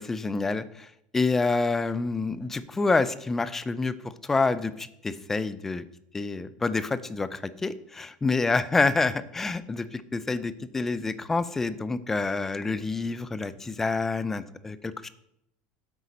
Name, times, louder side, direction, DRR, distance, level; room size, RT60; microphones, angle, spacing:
voice 1, 0.0-4.0 4.2-5.8 6.1-15.1, left 3 dB, 10° left, 15 dB, 0.5 m, -27 dB
9.1 x 8.4 x 5.3 m, 0.77 s
cardioid pair, 175°, 4 cm